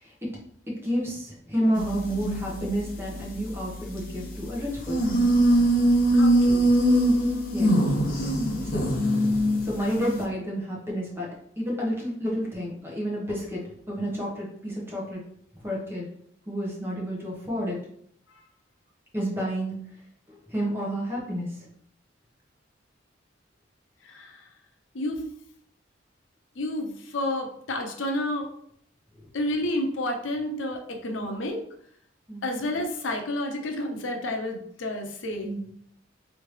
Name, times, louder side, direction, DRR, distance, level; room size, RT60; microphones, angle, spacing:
voice 1, 0.7-5.2 7.5-7.7 8.6-8.8 9.6-11.3 11.6-13.6 13.9-15.2 15.6-16.1 16.5-17.7 19.1-19.7 20.3-21.5 31.2-31.3 32.3-32.4 35.4-35.7, equal, 10° right, -4 dB, 1.2 m, -30 dB
sound 1, 1.7-4.5 4.9-10.2, right 1 dB, 50° left, 0.7 m, -23 dB
voice 2, 6.1-6.6 18.3-18.4 24.0-24.5 24.9-25.2 26.6-28.5 29.3-31.6 32.4-35.7, left 1 dB, 85° left, 3 dB, 0.7 m, -30 dB
3.6 x 3.2 x 3.2 m, 0.67 s
head